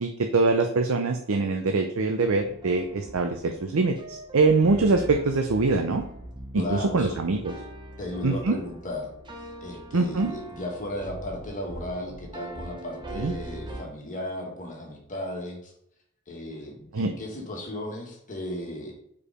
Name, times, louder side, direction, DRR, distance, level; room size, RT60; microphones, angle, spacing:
voice 1, 0.0-6.0 6.5-7.5 8.2-8.6 9.9-10.3 13.1-13.3 16.9-17.1, right 3 dB, 70° right, 5 dB, 0.6 m, -24 dB
sound 1, 2.2-13.8, right 1 dB, 20° right, 0.8 m, -41 dB
voice 2, 6.6-7.2 8.0-9.1 9.4-15.7 16.3-18.9, left 1 dB, 40° left, -1 dB, 1.7 m, -35 dB
5.0 x 4.7 x 4.9 m, 0.70 s
head